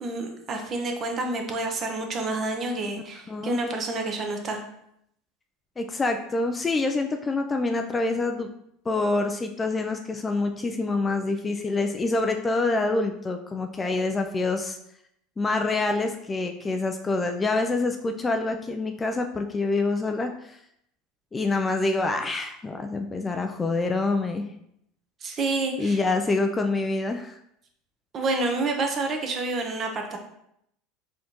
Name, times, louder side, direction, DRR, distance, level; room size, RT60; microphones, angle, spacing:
voice 1, 0.0-4.6 25.2-26.0 28.1-30.2, right 2 dB, 35° right, 4 dB, 0.8 m, -28 dB
voice 2, 3.3-3.6 5.8-8.5 8.9-14.8 15.4-20.6 21.3-24.5 25.8-27.4, left 3 dB, 20° left, 5 dB, 0.3 m, -26 dB
4.2 x 3.7 x 2.9 m, 0.75 s
supercardioid pair, 115°, 0 cm